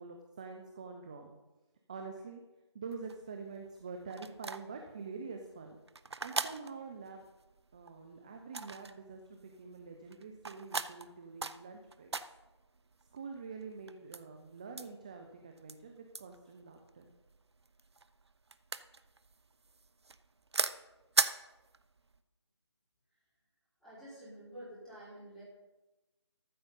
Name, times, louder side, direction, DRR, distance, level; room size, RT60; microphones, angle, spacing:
voice 1, 0.0-1.3 1.9-2.4 2.7-5.8 6.2-7.2 7.7-12.1 13.1-17.1, right 4 dB, 15° right, 4 dB, 0.5 m, -46 dB
sound 1, 2.9-22.2, right 4 dB, 65° right, 0.7 m, -40 dB
voice 2, 23.8-25.4, right 1 dB, 5° left, -11 dB, 3.9 m, -49 dB
13.5 x 7.8 x 5.5 m, 1.1 s
figure-of-eight pair, 160°, 15 cm